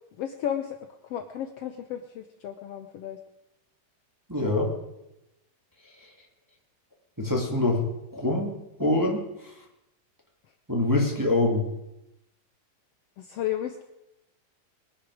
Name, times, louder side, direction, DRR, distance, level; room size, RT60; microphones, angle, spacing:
voice 1, 0.2-0.8 1.0-3.2 13.2-13.8, left 10 dB, 85° left, 6 dB, 1.3 m, -33 dB
voice 2, 4.3-4.7 7.2-9.5 10.7-11.7, left 2 dB, 5° right, -1 dB, 1.8 m, -25 dB
21.5 x 11.0 x 4.9 m, 0.90 s
omnidirectional pair, 3.9 m